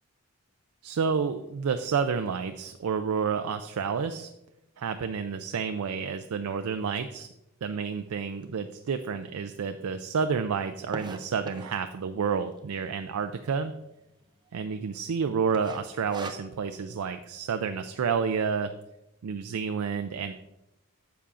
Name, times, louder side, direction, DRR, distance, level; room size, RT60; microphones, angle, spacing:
voice 1, 0.8-4.3 4.8-7.3 7.6-13.7 14.5-18.7 19.2-20.3, right 6 dB, 80° right, 8 dB, 0.4 m, -30 dB
sound 1, 8.4-8.5 9.1-9.2 9.4-9.5 9.7-11.9 12.5-12.9 13.3-13.4 13.6-13.7 14.2-14.6 14.9-15.1 15.5-16.8, right 2 dB, 20° right, 0.5 m, -40 dB
10.0 x 7.0 x 2.5 m, 0.91 s
head